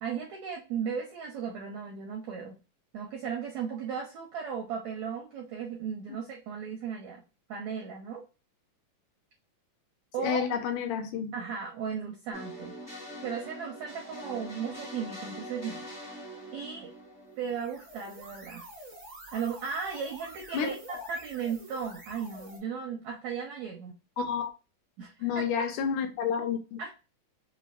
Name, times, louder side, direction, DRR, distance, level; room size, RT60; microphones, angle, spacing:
voice 1, 0.0-2.6 2.9-7.2 7.5-8.2 10.1-10.4 11.3-12.8 13.2-15.8 16.5-16.9 17.4-18.6 19.3-23.9 25.0-25.5 26.8-26.9, right 6 dB, 85° right, 1.6 m, -36 dB
voice 2, 10.2-11.3 20.5-20.7 21.0-21.1 24.2-24.5 25.2-26.8, left 7 dB, 75° left, 2.0 m, -30 dB
sound 1, 12.3-18.1, equal, 20° left, 0.4 m, -43 dB
sound 2, 17.3-22.6, right 1 dB, 65° right, 0.7 m, -48 dB
5.8 x 2.1 x 2.4 m
omnidirectional pair, 4.1 m